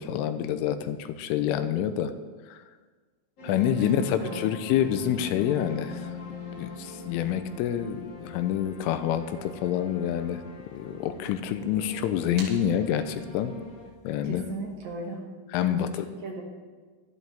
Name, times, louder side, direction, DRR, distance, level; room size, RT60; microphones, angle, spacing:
voice 1, 0.0-2.1 2.5-2.6 3.4-6.1 6.6-10.4 10.7-13.5 14.0-14.4 15.5-16.1, left 10 dB, 85° left, 10 dB, 3.1 m, -27 dB
sound 1, 3.4-13.9, left 3 dB, 45° left, 2.3 m, -43 dB
voice 2, 3.8-4.4 14.2-15.2 15.6-15.9 16.2-16.4, right 3 dB, 55° right, -2 dB, 2.1 m, -35 dB
sound 2, 4.7-14.9, right 3 dB, 85° right, 5.4 m, -53 dB
18.5 x 12.0 x 3.5 m, 1.4 s
omnidirectional pair, 5.8 m